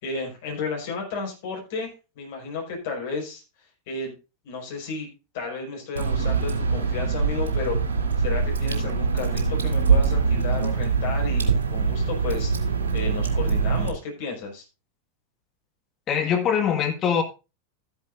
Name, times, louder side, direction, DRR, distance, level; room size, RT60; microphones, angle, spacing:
voice 1, 0.0-3.4 3.9-4.2 4.4-5.1 5.3-7.8 8.2-14.7, left 4 dB, 50° left, 5.2 m, -33 dB
Water / Drip, 6.0-13.9, right 5 dB, 65° right, 2.8 m, -23 dB
voice 2, 16.1-17.2, left 7 dB, 30° left, 1.6 m, -22 dB
13.5 x 10.5 x 2.5 m
figure-of-eight pair, 90°, 0 cm